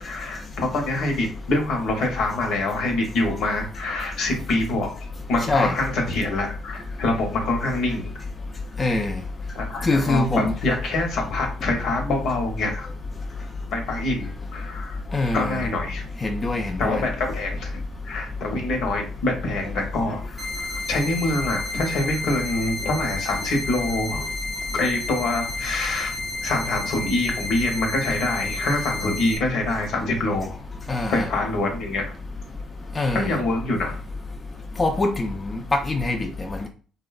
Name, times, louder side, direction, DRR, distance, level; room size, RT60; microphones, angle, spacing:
voice 1, 0.0-4.9 5.3-8.1 9.5-12.9 13.7-15.0 15.3-16.0 16.8-24.3 24.7-26.1 26.4-30.6 31.1-32.0 33.1-34.0, left 2 dB, 75° left, 2 dB, 0.8 m, -25 dB
voice 2, 8.8-9.2 9.8-10.5 15.1-15.6 16.2-17.0 30.9-31.3 33.0-33.3 34.8-36.7, left 2 dB, 30° left, 4 dB, 0.4 m, -24 dB
sound 1, 20.4-29.4, left 2 dB, 10° right, 0.7 m, -31 dB
2.6 x 2.1 x 2.4 m, 0.39 s
supercardioid pair, 65°, 0 cm